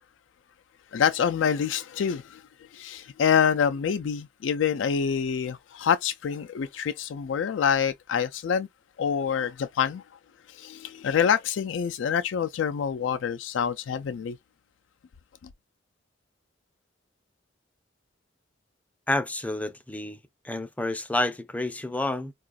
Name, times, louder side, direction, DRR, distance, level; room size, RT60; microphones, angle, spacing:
voice 1, 0.9-2.4 2.7-8.7 9.0-10.0 10.5-14.4, left 7 dB, 80° left, 0.4 m, -26 dB
voice 2, 19.1-20.2 20.4-22.3, left 1 dB, 10° left, 0.4 m, -29 dB
4.7 x 2.4 x 2.3 m
head